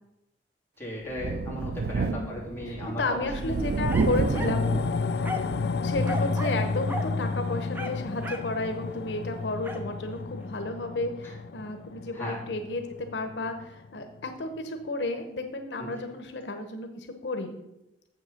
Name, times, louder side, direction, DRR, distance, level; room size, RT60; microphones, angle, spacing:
voice 1, 0.8-3.0 3.4-3.5 11.2-11.3 12.1-12.4 15.8-15.9, equal, 15° left, -5 dB, 2.9 m, -36 dB
Thunder, 1.1-6.2 6.6-6.7 8.1-8.2, right 3 dB, 60° right, 0.4 m, -30 dB
voice 2, 2.0-5.0 5.8-17.6, left 2 dB, 85° left, 6 dB, 0.9 m, -33 dB
sound 1, 3.3-13.9 14.2-14.3, left 4 dB, 65° left, 0.4 m, -32 dB
sound 2, 3.9-4.6 5.2-5.6 6.0-6.6 6.9-7.1 7.7-8.5 9.6-9.9, equal, 10° right, 0.8 m, -36 dB
7.5 x 6.3 x 6.4 m, 0.89 s
head